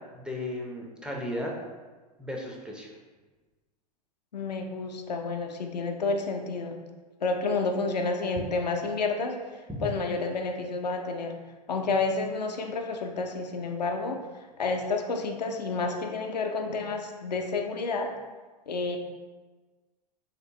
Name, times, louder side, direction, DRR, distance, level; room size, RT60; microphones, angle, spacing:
voice 1, 0.1-1.5 2.2-2.9 9.8-9.9, left 1 dB, 5° right, -1 dB, 0.4 m, -35 dB
voice 2, 4.3-6.8 7.2-11.4 11.7-14.2 14.6-18.1 18.7-19.0, left 3 dB, 85° left, 4 dB, 0.4 m, -30 dB
3.2 x 2.9 x 2.6 m, 1.3 s
figure-of-eight pair, 95°, 21 cm